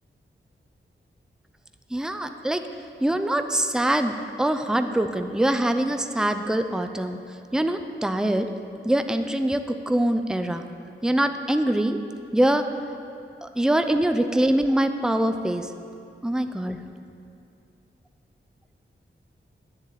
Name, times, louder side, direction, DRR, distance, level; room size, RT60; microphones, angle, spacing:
voice 1, 1.9-2.7 3.0-7.2 7.5-8.5 8.8-10.7 11.0-12.0 12.3-12.7 13.4-15.7 16.2-16.8, right 1 dB, 5° right, 8 dB, 0.6 m, -24 dB
10.0 x 7.4 x 9.1 m, 2.5 s
wide cardioid pair, 100°, 20 cm